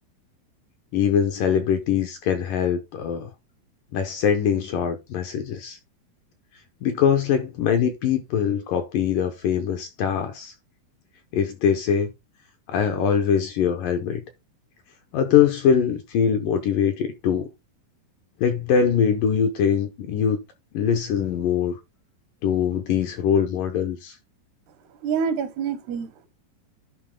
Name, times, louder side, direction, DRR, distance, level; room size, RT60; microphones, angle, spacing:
voice 1, 0.9-3.3 3.9-5.8 6.8-10.5 11.3-12.1 12.7-14.2 15.1-17.5 18.4-20.4 20.7-21.8 22.4-24.2, left 8 dB, 75° left, 2.1 m, -22 dB
voice 2, 25.0-26.3, right 6 dB, 80° right, 3.3 m, -27 dB
11.5 x 4.1 x 3.7 m
omnidirectional pair, 4.7 m